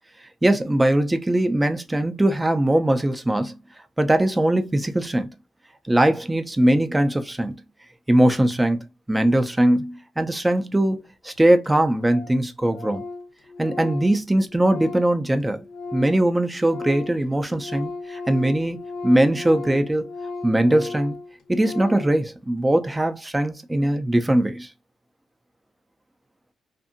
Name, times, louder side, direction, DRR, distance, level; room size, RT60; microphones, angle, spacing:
voice 1, 0.4-3.5 4.0-5.3 5.9-7.5 8.1-8.8 9.1-13.0 13.6-15.6 15.9-20.1 20.4-21.2 21.5-24.7, right 1 dB, 10° right, 0.4 m, -21 dB
Organ, 11.0-11.1 11.3-11.4 11.6-11.7 12.0-12.4 12.7-16.3 16.5-22.2, left 3 dB, 65° left, 0.6 m, -35 dB
2.6 x 2.5 x 2.5 m
cardioid pair, 125°, 0 cm